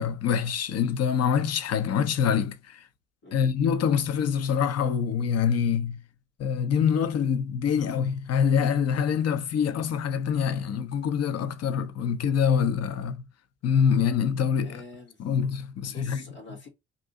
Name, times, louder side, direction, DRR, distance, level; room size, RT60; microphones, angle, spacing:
voice 1, 0.0-2.8 3.3-6.0 6.4-13.2 13.6-14.8 15.2-16.2, left 7 dB, 50° left, 0.7 m, -25 dB
voice 2, 14.6-15.3 15.8-16.7, left 2 dB, 85° left, 1.3 m, -46 dB
2.7 x 2.6 x 3.6 m
hypercardioid pair, 45°, 33 cm